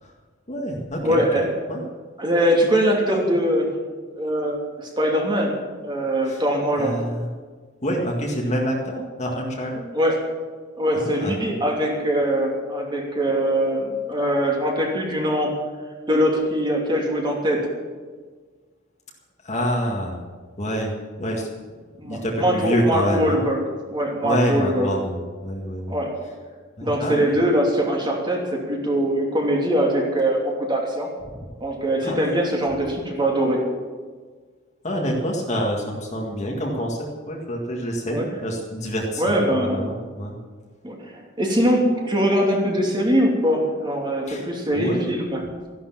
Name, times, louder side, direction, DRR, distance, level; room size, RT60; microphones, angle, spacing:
voice 1, 0.5-1.8 6.3-6.4 6.8-7.3 7.8-9.8 10.9-11.4 19.4-20.2 20.6-21.5 22.0-23.4 24.2-26.0 26.8-27.5 32.0-32.3 34.8-40.4 44.3-44.5 44.7-45.1, equal, 35° left, -1 dB, 1.9 m, -27 dB
voice 2, 1.0-1.5 2.2-3.7 4.2-5.5 5.8-7.0 9.9-10.2 10.8-15.5 16.1-17.7 22.0-23.6 23.9-24.9 25.9-26.1 26.8-31.1 31.6-33.6 38.1-38.3 39.2-39.8 40.8-45.4, equal, 25° right, 0 dB, 3.0 m, -22 dB
14.5 x 12.0 x 7.4 m, 1.5 s
head